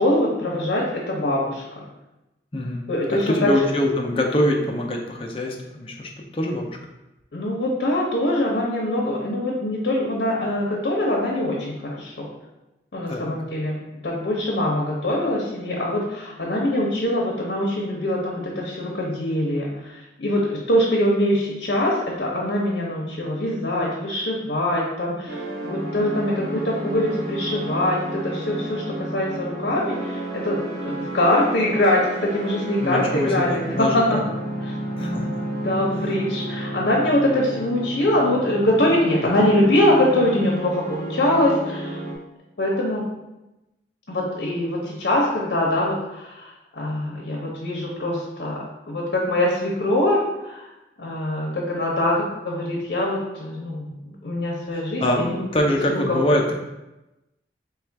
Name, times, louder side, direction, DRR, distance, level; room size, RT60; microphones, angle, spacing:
voice 1, 0.0-1.8 2.9-3.5 7.3-12.3 12.9-34.2 34.7-42.0 42.6-43.0 44.1-50.7 51.0-55.4 55.9-56.2, left 1 dB, 70° left, -3 dB, 0.7 m, -23 dB
voice 2, 2.5-2.9 3.3-6.8 13.1-13.3 32.8-34.2 35.0-35.3 54.7-56.5, left 1 dB, 30° left, 1 dB, 0.5 m, -24 dB
sound 1, 25.3-42.2, right 1 dB, 85° right, 1.4 m, -31 dB
3.3 x 2.4 x 4.4 m, 0.96 s
head